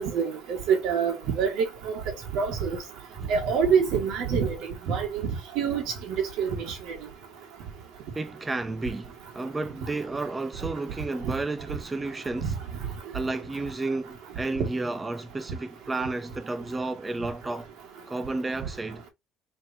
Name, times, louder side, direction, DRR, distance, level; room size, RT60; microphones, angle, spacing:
voice 1, 0.0-2.0 2.3-2.8 3.3-5.2 5.6-6.5 11.2-11.3 12.4-12.5, right 6 dB, 70° right, 2.0 m, -26 dB
voice 2, 8.1-12.6 13.1-17.7 18.1-19.0, right 2 dB, 10° right, 0.4 m, -32 dB
5.2 x 3.5 x 2.8 m
cardioid pair, 165°, 0 cm